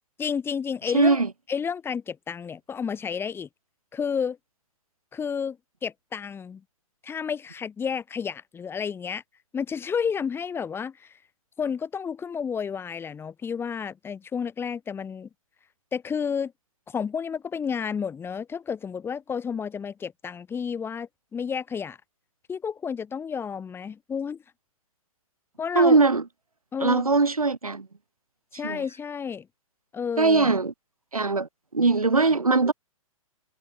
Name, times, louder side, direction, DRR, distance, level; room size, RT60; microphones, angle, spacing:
voice 1, 0.2-1.2 1.5-3.5 3.9-4.4 5.1-6.6 7.0-9.2 9.5-11.1 11.6-15.3 15.9-16.5 16.9-22.0 22.5-24.4 25.6-26.0 26.7-27.1 28.5-29.5 29.9-30.5, left 6 dB, 10° left, 7.2 m, -31 dB
voice 2, 0.9-1.3 25.7-26.2 26.8-27.9 28.6-28.8 30.2-30.7 31.1-32.7, right 3 dB, 80° right, 1.0 m, -21 dB
figure-of-eight pair, 115°, 18 cm